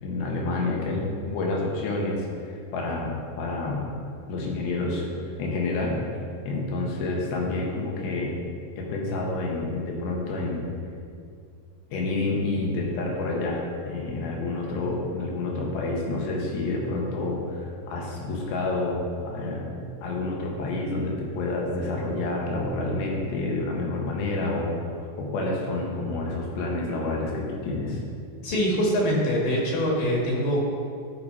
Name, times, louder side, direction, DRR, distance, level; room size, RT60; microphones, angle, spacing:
voice 1, 0.0-3.8 4.3-5.1 5.4-6.0 6.4-8.3 8.8-10.7 11.9-19.7 20.0-24.8 25.2-28.0, left 2 dB, 85° left, -1 dB, 3.1 m, -28 dB
voice 2, 28.4-30.6, equal, 70° left, -3 dB, 3.4 m, -24 dB
13.5 x 4.9 x 4.1 m, 2.3 s
omnidirectional pair, 4.2 m